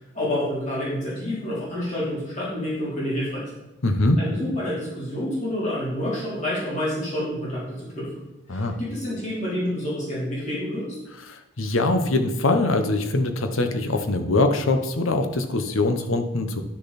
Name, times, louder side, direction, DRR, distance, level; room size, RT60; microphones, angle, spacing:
voice 1, 0.1-3.6 4.2-8.1 8.5-10.9, left 1 dB, 35° left, -8 dB, 3.5 m, -28 dB
voice 2, 3.8-4.2 8.5-8.8 11.3-16.6, left 2 dB, 75° left, 7 dB, 0.9 m, -23 dB
10.0 x 6.6 x 4.2 m, 0.94 s
head